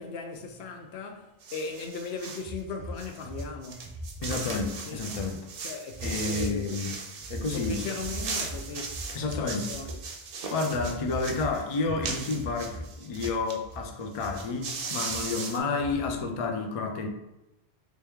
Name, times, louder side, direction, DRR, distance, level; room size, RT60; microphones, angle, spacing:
voice 1, 0.0-4.0 4.3-5.0 5.6-6.8 7.5-10.0, left 4 dB, 80° left, 0.8 m, -38 dB
sound 1, 1.4-2.5 3.0-13.6 13.8-13.9 14.1-15.6, right 4 dB, 65° right, 0.7 m, -38 dB
sound 2, 2.4-4.7 4.9-5.3 5.9-6.8 7.2-10.1 10.7-11.5 11.8-12.9 13.1-13.8 14.2-14.7 15.1-15.2 15.8-16.4, right 1 dB, 30° right, 0.5 m, -39 dB
voice 2, 4.2-5.4 6.0-7.0 7.3-7.8 9.1-9.8 10.5-17.1, left 4 dB, 50° left, 0.4 m, -30 dB
3.3 x 3.0 x 3.5 m
omnidirectional pair, 1.1 m